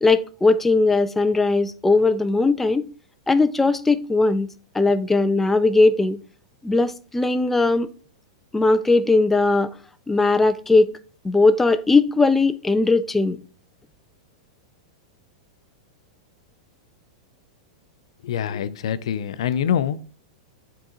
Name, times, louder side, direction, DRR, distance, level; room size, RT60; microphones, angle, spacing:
voice 1, 0.0-2.9 3.3-4.5 4.7-6.2 6.6-7.9 8.5-9.7 10.1-10.9 11.2-13.4, left 3 dB, 5° left, 0.3 m, -19 dB
voice 2, 18.2-20.0, left 9 dB, 75° left, 0.5 m, -24 dB
9.8 x 3.8 x 3.0 m
hypercardioid pair, 125°, 3 cm